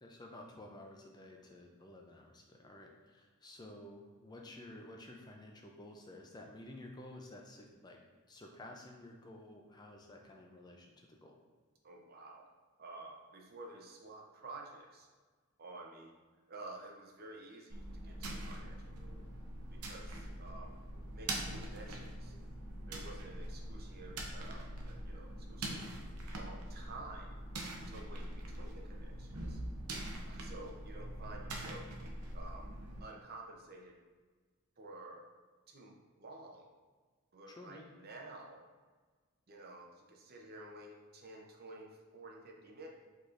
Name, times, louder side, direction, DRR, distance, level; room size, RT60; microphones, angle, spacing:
voice 1, 0.0-8.0 8.3-11.4 37.5-37.9, left 1 dB, 20° left, 1 dB, 0.4 m, -52 dB
voice 2, 11.8-12.5 12.8-15.1 15.6-16.1 16.5-19.3 19.7-20.8 21.1-22.3 22.9-25.9 26.3-27.3 27.9-29.6 30.3-31.9 32.3-32.7 33.0-34.0 34.8-35.2 35.7-36.7 37.3-38.6 39.5-42.9, right 2 dB, 45° right, 0 dB, 0.7 m, -51 dB
sound 1, 17.7-33.0, right 1 dB, 85° right, 0.7 m, -43 dB
4.9 x 4.1 x 2.5 m, 1.4 s
head